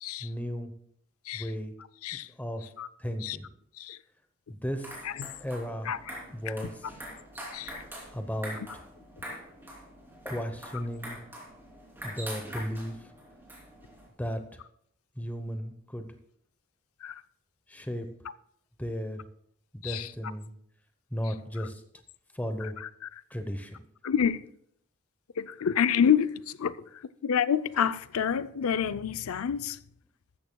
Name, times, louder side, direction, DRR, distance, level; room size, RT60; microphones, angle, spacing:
voice 1, 0.2-0.7 1.3-1.7 2.4-2.7 3.0-3.5 4.5-4.9 5.4-5.9 6.3-6.8 8.1-8.8 10.2-11.2 12.0-13.1 14.2-14.6 15.2-16.1 17.7-18.1 18.8-19.2 19.7-20.5 21.1-21.8 22.3-22.8 23.3-23.8, equal, 5° left, 0.9 m, -35 dB
sound 1, 4.6-14.1, equal, 10° right, 3.2 m, -44 dB
voice 2, 24.0-24.4 25.4-26.7 27.2-29.8, left 8 dB, 75° left, 0.5 m, -27 dB
14.5 x 13.5 x 2.3 m
head